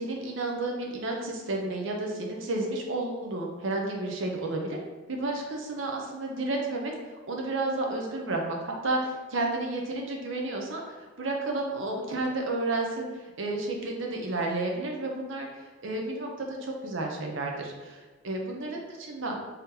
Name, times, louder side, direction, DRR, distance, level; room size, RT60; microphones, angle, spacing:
voice 1, 0.0-4.8 5.1-18.0 18.2-19.4, right 2 dB, 65° right, 0 dB, 0.7 m, -31 dB
3.5 x 2.8 x 3.6 m, 1.3 s
head